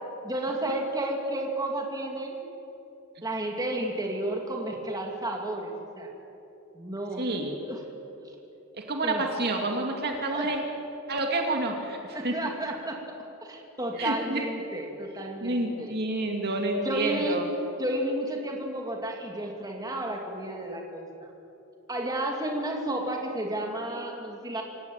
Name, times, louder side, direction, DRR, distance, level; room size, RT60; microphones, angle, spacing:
voice 1, 0.2-2.4 3.2-6.1 6.7-7.2 7.6-7.8 9.0-9.2 10.3-10.5 12.0-13.0 13.4-15.9 16.8-17.4 17.8-21.1 21.9-24.6, right 1 dB, 20° right, 0 dB, 2.9 m, -32 dB
voice 2, 7.2-7.6 8.7-10.6 11.1-12.4 14.0-14.4 15.4-17.5, right 2 dB, 50° right, 2 dB, 2.5 m, -29 dB
27.0 x 16.0 x 9.0 m, 3.0 s
head